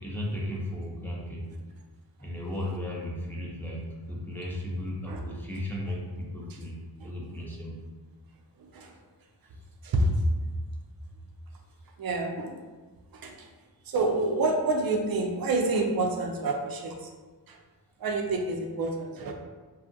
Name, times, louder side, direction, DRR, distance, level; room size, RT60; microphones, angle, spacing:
voice 1, 0.0-1.5 2.2-7.8, left 1 dB, 5° left, -4 dB, 0.6 m, -35 dB
voice 2, 8.6-8.9 9.8-10.3 12.0-12.6 13.1-13.5 13.9-17.1 17.5-17.6 18.0-19.3, right 2 dB, 55° right, 3 dB, 0.5 m, -28 dB
2.6 x 2.4 x 2.6 m, 1.4 s
wide cardioid pair, 50°, 46 cm